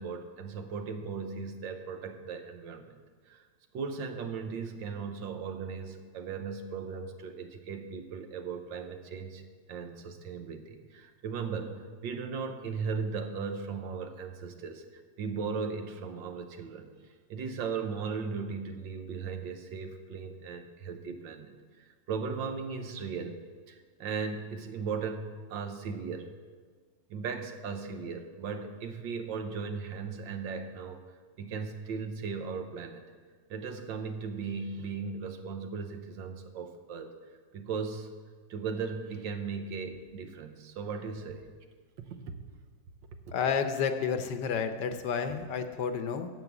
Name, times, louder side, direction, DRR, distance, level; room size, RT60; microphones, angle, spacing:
voice 1, 0.0-3.0 3.3-3.4 3.7-9.4 9.7-16.9 17.3-23.4 23.7-26.3 27.1-31.0 31.4-33.1 33.5-37.1 37.5-38.1 38.5-41.5 42.0-42.2 43.3-43.4, right 5 dB, 85° right, 6 dB, 1.6 m, -37 dB
voice 2, 43.3-46.3, left 6 dB, 70° left, 8 dB, 1.4 m, -30 dB
9.7 x 7.4 x 8.1 m, 1.5 s
omnidirectional pair, 2.0 m